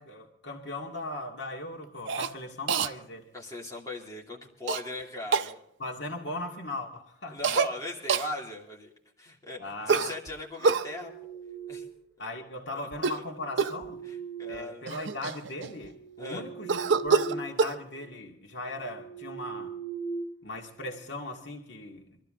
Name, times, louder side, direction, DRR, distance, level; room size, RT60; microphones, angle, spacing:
voice 1, 0.0-3.3 5.8-7.4 9.6-10.1 12.2-14.0 14.5-19.8 20.4-22.2, left 2 dB, 70° left, 2.1 m, -38 dB
Cough, 2.1-2.3 2.7-2.9 4.7-4.8 5.3-5.5 7.4-7.7 8.1-8.3 9.9-10.9 12.9-13.3 13.6-13.9 14.5-14.6 14.9-15.9 16.7-17.8, right 5 dB, 75° right, 0.7 m, -26 dB
voice 2, 3.3-5.6 7.3-8.9 9.2-11.1 11.7-11.8 14.0-14.9 16.2-16.5, left 2 dB, 20° left, 2.8 m, -38 dB
sound 1, 10.6-12.1 13.1-15.2 15.7-17.6 17.9-18.1 18.6-21.0, right 6 dB, 15° right, 6.5 m, -41 dB
24.0 x 13.5 x 3.7 m
head